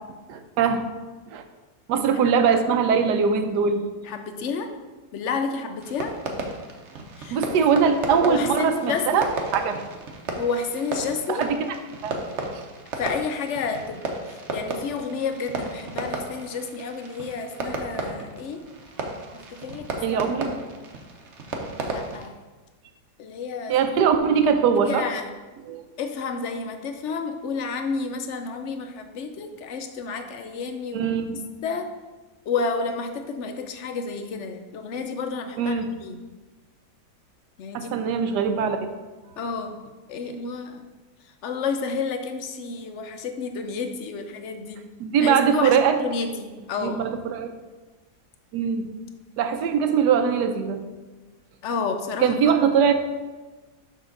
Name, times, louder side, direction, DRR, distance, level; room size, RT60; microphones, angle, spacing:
voice 1, 0.3-0.8 1.3-1.4 1.9-3.8 7.3-9.3 9.5-9.8 11.3-11.6 12.0-12.2 20.0-20.5 23.7-25.1 25.7-25.8 30.9-31.4 35.6-35.9 37.7-38.8 45.0-46.0 46.8-47.5 48.5-48.9 49.4-50.8 52.2-52.9, right 6 dB, 80° right, 7 dB, 1.2 m, -21 dB
voice 2, 4.0-4.7 5.1-6.1 7.2-7.4 8.3-9.2 10.4-11.4 13.0-18.6 19.3-20.2 21.8-22.3 23.2-23.7 24.8-25.3 26.0-31.1 31.6-31.9 32.5-36.2 37.6-37.9 39.4-39.8 40.1-40.8 41.4-44.8 45.2-47.0 51.6-52.5, left 5 dB, 65° left, 6 dB, 0.7 m, -30 dB
Fireworks, 5.8-22.3, right 3 dB, 50° right, 1.0 m, -34 dB
6.4 x 6.2 x 3.9 m, 1.2 s
omnidirectional pair, 1.8 m